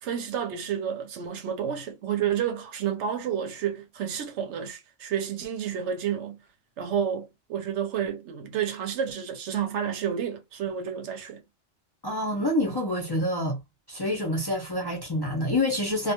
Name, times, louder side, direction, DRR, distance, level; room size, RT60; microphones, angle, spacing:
voice 1, 0.0-6.4 6.8-11.4, right 8 dB, 80° right, 0.9 m, -30 dB
voice 2, 12.0-13.6 13.9-16.1, left 1 dB, 30° left, 0.5 m, -27 dB
2.3 x 2.2 x 2.8 m
omnidirectional pair, 1.2 m